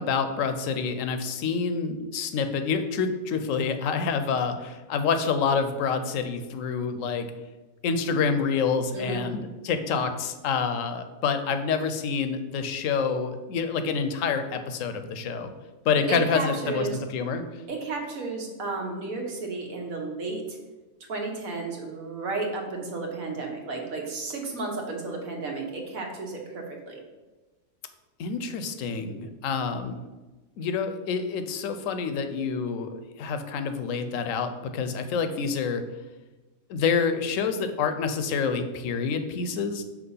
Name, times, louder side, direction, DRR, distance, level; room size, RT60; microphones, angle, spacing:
voice 1, 0.0-7.3 7.8-15.5 15.8-16.9 17.1-17.4 28.2-30.0 30.6-35.8 36.7-39.8, left 5 dB, 75° left, 8 dB, 1.0 m, -27 dB
voice 2, 8.9-9.3 16.1-17.0 17.7-20.6 21.0-27.0, right 3 dB, 85° right, 0 dB, 1.5 m, -33 dB
5.9 x 3.0 x 5.5 m, 1.2 s
omnidirectional pair, 1.4 m